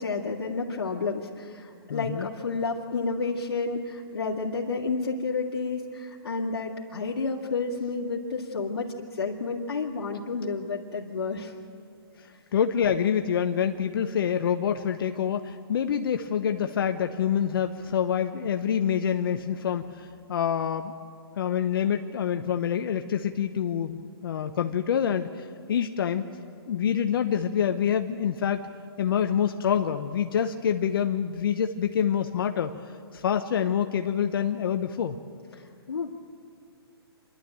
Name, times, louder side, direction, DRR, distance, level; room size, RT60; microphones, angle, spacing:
voice 1, 0.0-11.5 12.3-12.4 35.5-36.1, left 4 dB, 85° left, -5 dB, 2.3 m, -31 dB
voice 2, 1.9-2.3 12.5-20.9 21.4-26.2 26.7-28.6 29.0-32.7 33.1-35.2, left 8 dB, 60° left, 7 dB, 0.9 m, -26 dB
27.5 x 11.5 x 9.0 m, 2.3 s
hypercardioid pair, 150°, 13 cm